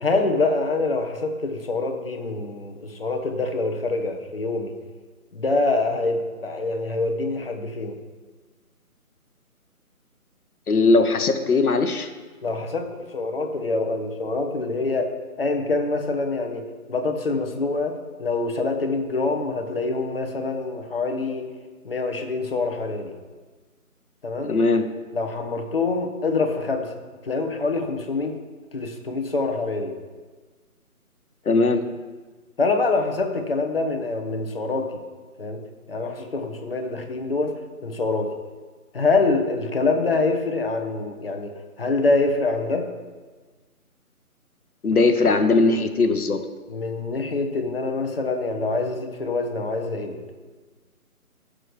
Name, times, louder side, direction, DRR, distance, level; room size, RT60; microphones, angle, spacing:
voice 1, 0.0-4.7 5.3-8.0 12.4-15.1 15.4-16.6 16.9-21.5 21.8-23.1 24.2-24.5 25.1-26.9 27.2-28.4 28.7-30.0 31.5-31.6 32.6-35.0 35.4-35.6 35.9-37.5 37.8-38.3 38.9-42.9 46.7-50.2, left 3 dB, 40° left, 4 dB, 1.1 m, -25 dB
voice 2, 10.7-12.1 24.4-24.9 31.5-31.8 44.8-46.4, left 3 dB, 70° left, 7 dB, 1.0 m, -19 dB
15.0 x 6.4 x 3.3 m, 1.4 s
figure-of-eight pair, 160°, 45 cm